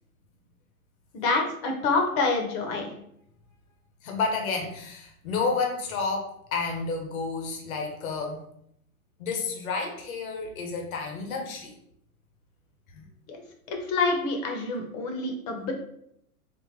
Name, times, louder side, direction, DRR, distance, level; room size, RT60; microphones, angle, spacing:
voice 1, 1.1-2.9 13.3-13.4 13.7-15.7, left 3 dB, 35° left, 2 dB, 0.9 m, -27 dB
voice 2, 4.0-8.4 9.2-11.7 12.9-13.0, left 4 dB, 70° left, 2 dB, 1.1 m, -30 dB
4.3 x 2.4 x 3.2 m, 0.73 s
hypercardioid pair, 135°, 43 cm